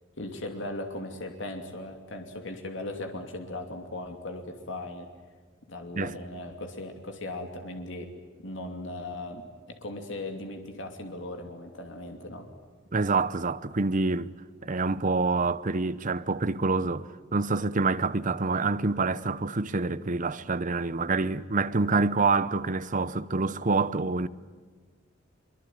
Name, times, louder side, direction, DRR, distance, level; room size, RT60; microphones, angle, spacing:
voice 1, 0.2-5.1 5.7-8.1 8.4-9.4 9.7-12.5, left 2 dB, 65° left, 2.8 m, -38 dB
voice 2, 12.9-14.3 14.6-24.3, right 3 dB, 40° right, 0.8 m, -27 dB
24.0 x 23.5 x 9.3 m
head